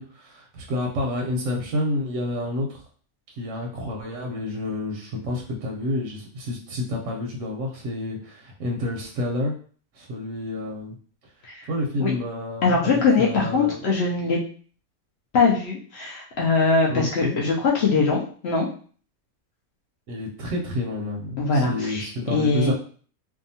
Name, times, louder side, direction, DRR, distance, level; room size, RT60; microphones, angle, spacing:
voice 1, 0.0-2.8 3.3-9.6 9.9-10.9 11.7-13.8 16.9-17.4 20.1-22.7, left 1 dB, 65° right, -1 dB, 0.8 m, -29 dB
voice 2, 12.6-14.4 15.3-18.7 21.4-22.7, left 4 dB, 70° left, -2 dB, 0.6 m, -22 dB
2.6 x 2.3 x 2.6 m, 0.44 s
omnidirectional pair, 1.7 m